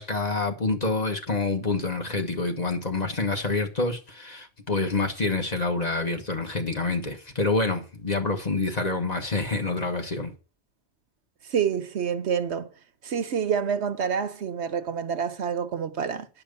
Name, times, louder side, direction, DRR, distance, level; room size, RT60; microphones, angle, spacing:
voice 1, 0.0-10.3, left 3 dB, 35° left, 1.5 m, -27 dB
voice 2, 11.5-12.7 13.0-16.3, right 7 dB, 75° right, 1.2 m, -27 dB
10.5 x 5.8 x 6.8 m
omnidirectional pair, 1.2 m